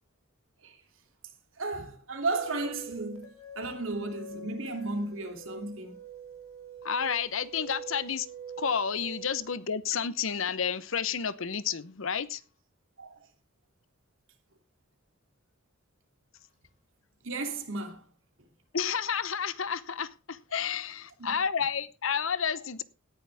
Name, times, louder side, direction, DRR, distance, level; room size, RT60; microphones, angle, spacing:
voice 1, 1.6-6.0 13.0-13.2 17.2-18.0 21.2-21.3, right 2 dB, 70° right, 2.8 m, -34 dB
sound 1, 2.3-9.5, right 5 dB, 90° left, 3.7 m, -45 dB
voice 2, 6.8-8.3 8.6-12.4 18.7-22.8, left 7 dB, 70° left, 0.9 m, -31 dB
18.0 x 10.5 x 3.5 m
head